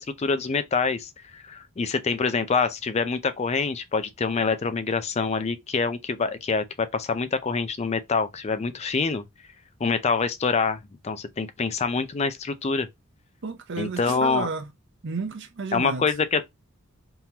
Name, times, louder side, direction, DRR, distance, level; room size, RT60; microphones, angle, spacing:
voice 1, 0.0-9.2 9.8-10.8 11.0-12.9 13.8-14.5 15.7-16.5, left 4 dB, 30° left, 0.4 m, -26 dB
voice 2, 13.4-14.7 15.0-16.1, right 4 dB, 55° right, 0.6 m, -32 dB
3.6 x 2.9 x 2.8 m
head